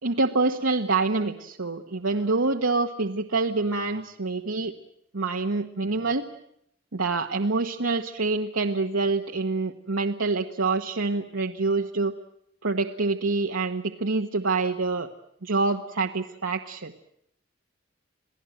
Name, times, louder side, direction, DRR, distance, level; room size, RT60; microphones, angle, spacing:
voice 1, 0.0-4.7 5.1-6.3 6.9-12.1 12.6-15.1 15.4-16.9, right 3 dB, 90° right, 3 dB, 1.3 m, -26 dB
28.5 x 18.0 x 9.1 m, 0.74 s
head